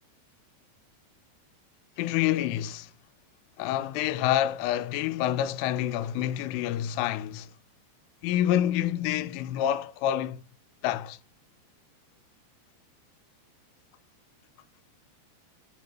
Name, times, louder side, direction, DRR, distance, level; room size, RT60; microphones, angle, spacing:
voice 1, 2.0-2.9 3.6-7.5 8.2-10.4 10.8-11.2, left 12 dB, 90° left, 3.0 m, -27 dB
7.4 x 6.8 x 2.2 m
omnidirectional pair, 5.5 m